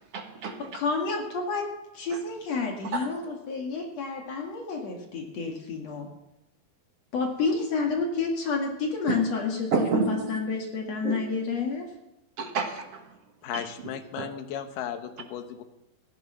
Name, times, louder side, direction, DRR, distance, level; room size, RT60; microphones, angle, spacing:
voice 1, 0.0-0.6 2.9-3.1 9.1-9.2 9.7-10.4 11.0-11.2 12.4-13.0 13.5-13.6 14.2-14.3, right 4 dB, 55° right, 4 dB, 2.1 m, -29 dB
voice 2, 0.6-1.7 1.9-6.1 7.1-11.9, left 4 dB, 50° left, 1 dB, 2.8 m, -29 dB
voice 3, 13.4-15.6, left 9 dB, 75° left, 7 dB, 2.7 m, -35 dB
15.5 x 11.0 x 5.7 m, 0.92 s
omnidirectional pair, 4.1 m